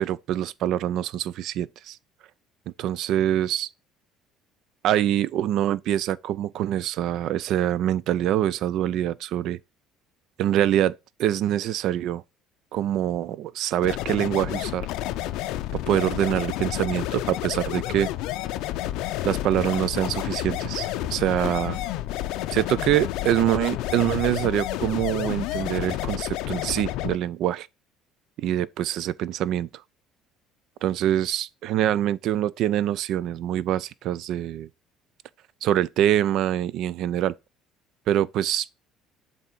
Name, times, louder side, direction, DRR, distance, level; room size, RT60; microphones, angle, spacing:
voice 1, 0.0-2.0 2.8-3.7 4.8-9.6 10.4-10.9 11.2-12.2 12.7-14.9 15.7-18.1 19.2-21.8 22.5-27.7 28.4-29.7 30.8-34.7 35.6-37.3 38.1-38.7, right 11 dB, 65° right, 0.3 m, -25 dB
sound 1, 13.8-27.2, left 14 dB, 70° left, 0.5 m, -30 dB
7.3 x 2.8 x 5.1 m
hypercardioid pair, 65°, 0 cm